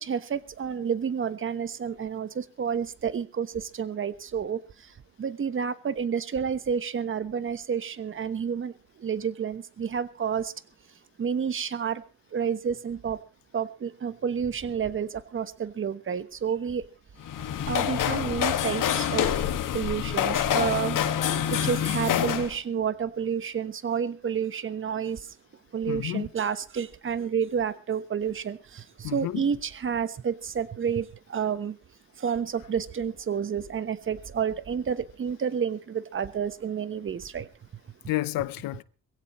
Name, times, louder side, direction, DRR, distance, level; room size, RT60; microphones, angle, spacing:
voice 1, 0.0-3.5 3.8-4.6 5.2-8.7 9.0-10.5 11.2-12.0 12.3-13.2 13.5-16.8 17.7-19.3 19.7-21.0 21.5-25.2 25.7-28.6 29.1-31.7 32.2-37.4, right 7 dB, 35° right, 1.2 m, -30 dB
sound 1, 17.2-22.5, left 9 dB, 65° left, 1.9 m, -27 dB
voice 2, 21.6-22.4 25.9-26.3 29.0-29.5 38.1-38.8, left 17 dB, 85° left, 0.8 m, -31 dB
22.0 x 16.5 x 3.1 m
cardioid pair, 110°, 34 cm